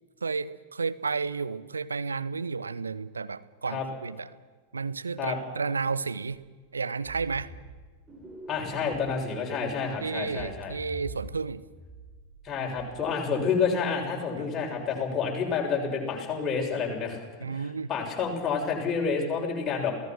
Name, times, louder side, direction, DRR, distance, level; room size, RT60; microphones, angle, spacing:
voice 1, 0.2-4.3 4.7-6.4 6.7-7.5 10.0-11.7 14.4-14.5 17.4-17.9, right 4 dB, 75° right, 15 dB, 0.9 m, -32 dB
sound 1, 7.0-7.8 8.1-9.1 9.4-11.5 11.7-12.4 12.8-13.0, right 2 dB, 15° right, 4.6 m, -44 dB
voice 2, 8.5-10.7 12.4-17.2 17.5-19.9, left 5 dB, 25° left, 0 dB, 6.5 m, -29 dB
28.0 x 18.0 x 6.2 m, 1.4 s
figure-of-eight pair, 90°, 0 cm